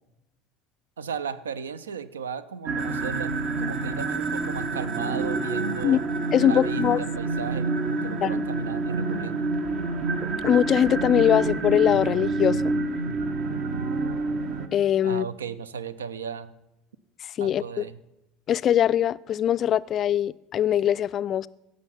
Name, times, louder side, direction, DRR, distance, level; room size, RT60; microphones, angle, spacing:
voice 1, 1.0-6.0 6.4-9.5 15.0-16.5 17.4-18.0, right 7 dB, 75° right, 0.5 m, -36 dB
sound 1, 2.7-14.7, right 3 dB, 50° right, 1.0 m, -27 dB
voice 2, 6.3-7.0 8.2-8.4 10.4-12.7 14.7-15.2 17.4-17.8 18.5-21.5, left 10 dB, 40° left, 0.3 m, -22 dB
16.5 x 6.3 x 5.8 m
figure-of-eight pair, 70°, 0 cm